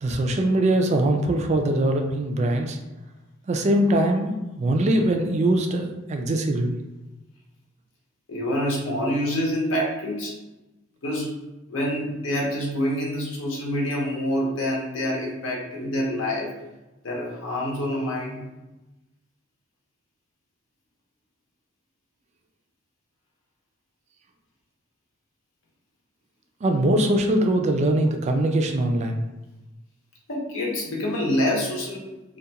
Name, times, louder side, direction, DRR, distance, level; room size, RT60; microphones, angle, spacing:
voice 1, 0.0-2.8 3.5-6.8 26.6-29.2, right 1 dB, 35° right, 4 dB, 0.3 m, -22 dB
voice 2, 8.3-10.3 11.0-11.3 11.7-16.6 17.0-18.5 30.3-32.4, equal, 70° left, -3 dB, 0.7 m, -27 dB
2.3 x 2.2 x 2.8 m, 1.0 s
head